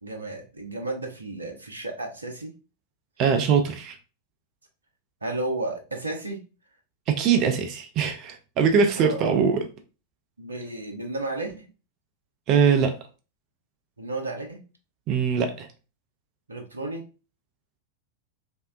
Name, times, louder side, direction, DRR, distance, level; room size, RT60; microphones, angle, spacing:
voice 1, 0.0-2.5 5.2-6.4 9.0-9.3 10.4-11.7 14.0-14.6 16.5-17.0, right 2 dB, 80° right, 0.6 m, -33 dB
voice 2, 3.2-4.0 7.1-9.7 12.5-13.0 15.1-15.7, right 6 dB, 35° right, 0.4 m, -22 dB
3.3 x 2.6 x 2.3 m
figure-of-eight pair, 90°, 0 cm